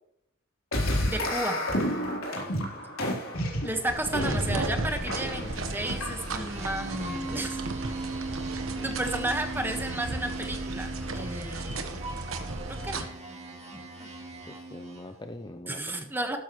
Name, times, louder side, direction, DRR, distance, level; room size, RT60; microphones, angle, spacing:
sound 1, 0.7-6.5, equal, 80° left, 3.7 m, -30 dB
voice 1, 1.0-1.6 3.6-7.6 8.8-12.0 12.7-13.2 15.7-16.4, right 1 dB, 10° right, 5 dB, 1.4 m, -33 dB
sound 2, 3.9-13.0, right 2 dB, 75° right, 1.3 m, -35 dB
sound 3, 4.4-15.2, right 2 dB, 30° right, 2.2 m, -39 dB
voice 2, 14.5-16.0, left 1 dB, 20° left, 7 dB, 0.6 m, -43 dB
12.5 x 12.5 x 3.2 m, 0.73 s
head